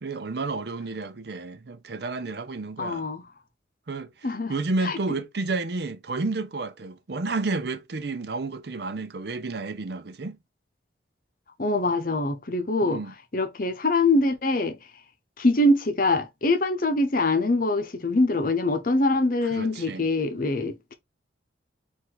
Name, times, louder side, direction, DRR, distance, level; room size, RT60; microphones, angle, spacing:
voice 1, 0.0-3.1 3.9-10.4 12.8-13.1 19.4-20.1, right 3 dB, 55° right, 0.6 m, -31 dB
voice 2, 2.8-3.3 4.2-4.5 4.8-5.0 11.6-13.0 13.3-14.8 15.4-20.9, left 2 dB, 45° left, 0.8 m, -24 dB
4.7 x 2.7 x 3.9 m
head